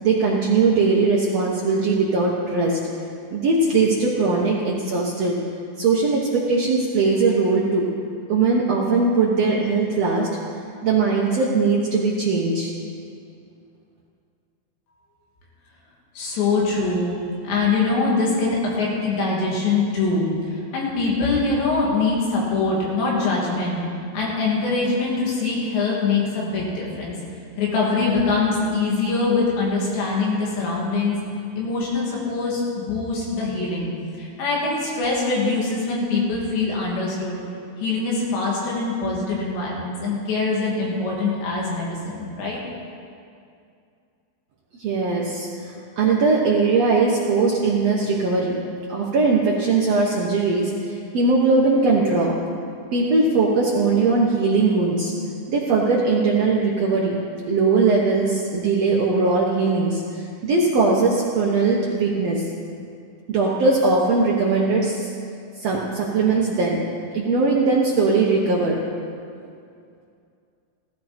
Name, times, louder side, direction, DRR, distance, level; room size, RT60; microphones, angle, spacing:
voice 1, 0.0-2.8 3.3-5.3 5.8-7.9 8.3-10.3 10.8-12.7 44.8-48.6 48.9-52.4 52.9-55.1 55.5-57.2 57.4-62.4 63.3-65.1 65.6-66.8 67.1-68.8, right 3 dB, 85° right, -4 dB, 1.4 m, -20 dB
voice 2, 16.1-17.2 17.4-23.8 24.1-27.2 27.6-31.2 31.6-33.9 34.2-37.4 37.8-42.6, left 3 dB, 85° left, -4 dB, 4.9 m, -23 dB
16.0 x 14.5 x 4.4 m, 2.4 s
omnidirectional pair, 4.9 m